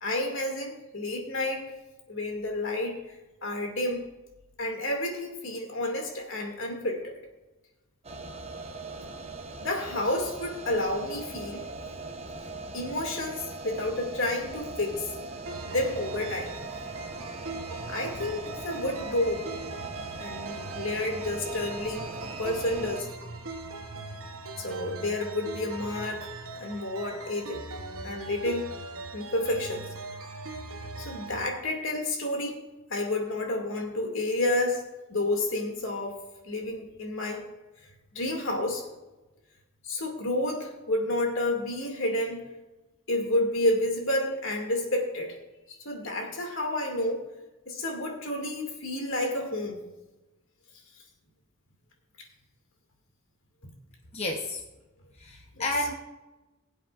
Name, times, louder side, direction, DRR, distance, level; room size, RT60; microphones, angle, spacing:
voice 1, 0.0-1.6 2.1-4.0 4.6-7.2 9.6-11.6 12.7-15.1 15.6-16.5 17.9-19.5 20.2-23.1 24.6-26.3 26.6-27.6 28.0-28.7 29.1-29.8 31.0-32.6 32.9-36.2 36.4-37.4 38.1-38.8 39.8-42.5 43.1-45.4 45.7-47.2 47.7-49.8 55.6-55.7, left 1 dB, 65° left, 2 dB, 2.3 m, -30 dB
sound 1, 8.0-23.0, right 3 dB, 30° right, 0.8 m, -40 dB
sound 2, 15.5-31.5, right 3 dB, 75° right, 1.0 m, -41 dB
voice 2, 54.1-54.6 55.2-55.9, left 1 dB, 30° left, 1 dB, 0.8 m, -31 dB
21.0 x 8.0 x 2.5 m, 1.1 s
head